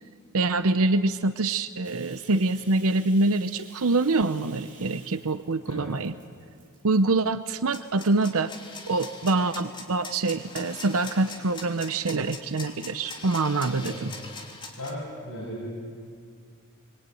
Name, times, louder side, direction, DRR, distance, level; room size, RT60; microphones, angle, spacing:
voice 1, 0.3-6.1 6.8-8.5 8.9-14.1, right 3 dB, 70° right, 11 dB, 0.8 m, -25 dB
Bathtub (filling or washing), 1.8-7.2 7.6-8.1 8.6-9.4, right 5 dB, 35° right, 3.9 m, -52 dB
sound 1, 7.7-14.9, left 3 dB, 20° left, 3.2 m, -41 dB
voice 2, 13.7-14.3 14.8-15.8, equal, 75° left, -6 dB, 7.4 m, -37 dB
25.0 x 23.5 x 9.3 m, 2.2 s
head